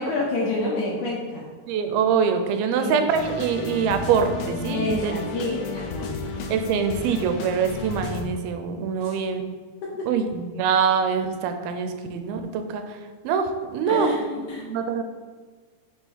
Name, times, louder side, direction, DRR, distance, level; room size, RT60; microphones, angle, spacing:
voice 1, 0.0-1.5 2.7-3.0 4.7-6.3 9.0-9.2 9.8-10.1 13.9-14.6, left 2 dB, 70° left, -3 dB, 2.0 m, -28 dB
voice 2, 1.7-5.1 6.5-9.6 10.1-15.0, right 6 dB, 85° right, 7 dB, 2.5 m, -24 dB
sound 1, 3.1-8.2, left 4 dB, 90° left, 2.5 m, -33 dB
6.6 x 3.6 x 4.5 m, 1.6 s
omnidirectional pair, 4.3 m